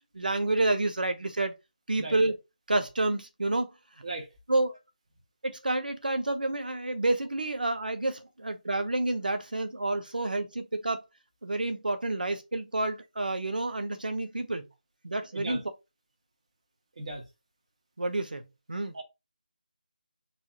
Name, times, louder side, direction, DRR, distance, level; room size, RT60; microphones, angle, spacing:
voice 1, 0.1-1.6 1.9-2.3 2.7-3.7 4.5-4.8 5.4-11.0 11.4-14.6 15.0-15.6 18.0-18.4 18.7-18.9, right 2 dB, 85° right, 1.1 m, -29 dB
voice 2, 2.0-2.2 4.0-4.3 15.3-15.6 17.0-17.2 18.9-19.0, right 2 dB, 50° right, 1.8 m, -37 dB
4.5 x 3.4 x 3.0 m
figure-of-eight pair, 165°, 5 cm